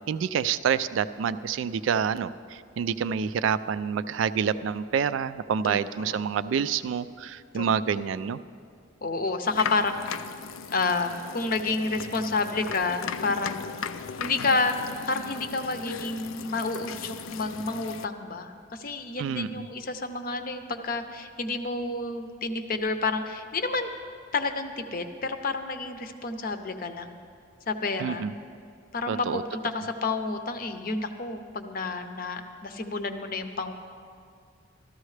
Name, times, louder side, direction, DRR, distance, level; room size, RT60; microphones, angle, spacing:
voice 1, 0.1-8.4 19.2-19.7 28.0-28.3 29.1-29.4, right 7 dB, 70° right, 14 dB, 0.3 m, -27 dB
voice 2, 5.6-6.3 7.5-7.7 8.0-8.1 9.0-10.2 10.7-13.6 14.2-14.8 15.1-23.9 24.3-27.2 27.7-28.3 28.9-33.7, left 3 dB, 45° left, 7 dB, 0.6 m, -30 dB
sound 1, 9.5-18.1, left 6 dB, 85° left, 0.4 m, -37 dB
14.0 x 13.0 x 3.2 m, 2.3 s
head